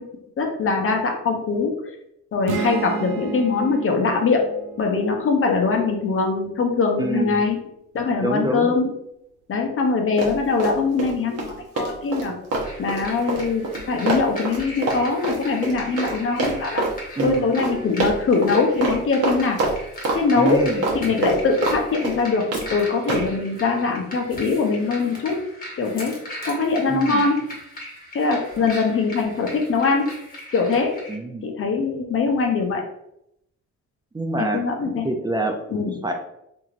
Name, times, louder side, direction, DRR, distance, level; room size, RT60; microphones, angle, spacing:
voice 1, 0.4-1.8 2.3-4.4 4.8-7.6 7.9-8.9 9.5-12.3 12.8-16.8 17.2-19.6 20.1-20.6 20.9-25.4 25.8-26.2 26.4-27.4 28.1-30.1 30.5-30.9 31.4-32.8 34.4-35.1 35.7-36.0, left 4 dB, 45° left, 3 dB, 0.6 m, -22 dB
sound 1, 2.5-6.2, right 6 dB, 80° right, 0.5 m, -32 dB
voice 2, 7.0-7.4 8.2-8.7 17.2-17.5 20.3-20.8 26.9-27.3 31.1-31.5 34.1-34.6 35.0-35.6 36.0-36.1, right 2 dB, 15° right, 3 dB, 0.4 m, -25 dB
Run, 10.2-11.1 11.4-16.1 16.4-16.9 17.2-17.3 17.6-17.7 18.0-18.5 18.8-19.0 19.2-20.2 20.5-21.8 22.0-22.6 23.1-23.3, right 2 dB, 55° right, 0.9 m, -24 dB
sound 2, 12.6-31.2, left 1 dB, 30° left, 1.1 m, -38 dB
2.9 x 2.6 x 2.4 m, 0.80 s
cardioid pair, 90°, 30 cm